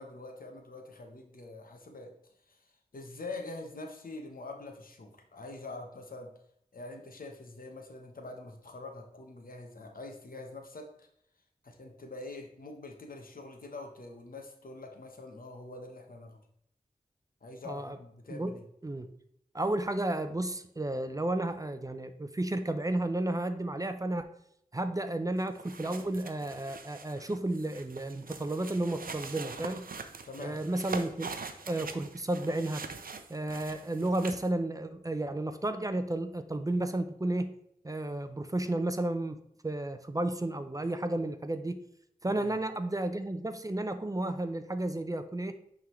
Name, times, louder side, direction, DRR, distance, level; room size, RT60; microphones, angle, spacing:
voice 1, 0.0-2.1 2.5-2.6 2.9-6.3 6.7-11.1 11.6-16.4 17.4-18.6 30.2-30.6 42.3-42.5, left 2 dB, 70° left, 3 dB, 1.1 m, -45 dB
voice 2, 17.6-18.0 18.3-18.5 18.8-19.1 19.5-24.3 24.7-29.8 30.4-31.4 31.7-32.8 33.3-37.5 37.8-39.4 39.6-41.8 42.2-45.5, right 1 dB, 25° right, 9 dB, 0.5 m, -32 dB
sound 1, 25.4-34.5, right 4 dB, 75° right, 0.6 m, -43 dB
9.1 x 3.8 x 3.2 m, 0.73 s
wide cardioid pair, 55°, 15 cm